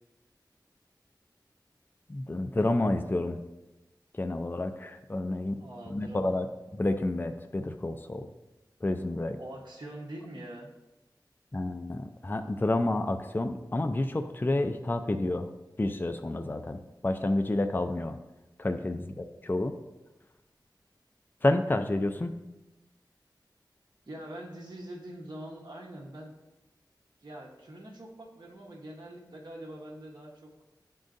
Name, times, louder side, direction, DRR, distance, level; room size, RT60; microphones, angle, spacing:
voice 1, 2.1-3.4 4.2-5.6 5.9-6.5 6.7-8.3 8.8-9.4 11.5-15.5 15.8-18.2 18.6-19.7 21.4-22.3, left 2 dB, 25° left, 7 dB, 0.4 m, -29 dB
voice 2, 5.5-6.4 9.4-10.7 24.1-26.3 27.2-30.5, right 1 dB, 60° right, -3 dB, 1.1 m, -44 dB
10.5 x 3.8 x 2.6 m, 1.0 s
wide cardioid pair, 50°, 8 cm